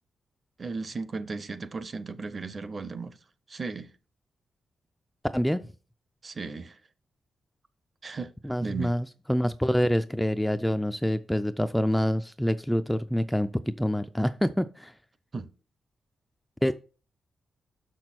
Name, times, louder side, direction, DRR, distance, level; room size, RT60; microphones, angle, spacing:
voice 1, 0.6-3.2 3.5-3.9 6.2-6.8 8.0-8.3 8.6-9.0 15.3-15.5, right 4 dB, 35° right, 0.6 m, -35 dB
voice 2, 5.3-5.6 8.4-13.5 13.8-14.9 16.6-16.7, equal, ahead, 0.3 m, -26 dB
6.7 x 6.1 x 4.3 m
wide cardioid pair, 145°, 0 cm